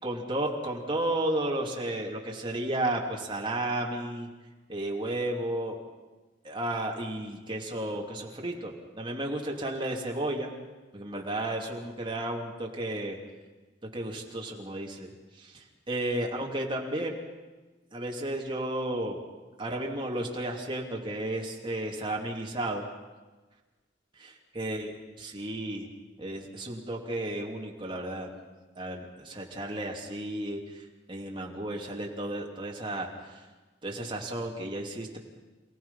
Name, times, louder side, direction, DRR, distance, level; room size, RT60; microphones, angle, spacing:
voice 1, 0.0-4.3 4.7-5.8 6.4-10.5 10.9-13.2 13.9-17.2 17.9-19.2 19.6-22.8 24.2-24.9 25.2-25.9 26.2-28.3 28.8-33.4 33.8-35.2, right 1 dB, 25° right, 0 dB, 2.9 m, -33 dB
28.0 x 17.5 x 5.7 m, 1.3 s
head